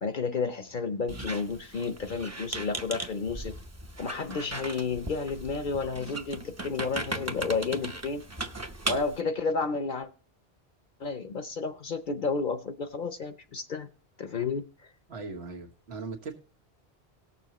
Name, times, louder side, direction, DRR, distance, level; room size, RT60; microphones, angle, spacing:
voice 1, 0.0-3.5 4.0-8.2 8.9-10.1 11.0-13.9 14.2-14.6, left 4 dB, 55° left, 9 dB, 0.8 m, -31 dB
Squeak, 1.1-9.2, right 2 dB, 20° right, 0.6 m, -37 dB
voice 2, 15.1-16.3, right 4 dB, 80° right, 3 dB, 1.7 m, -39 dB
18.5 x 7.0 x 3.0 m, 0.37 s
omnidirectional pair, 1.1 m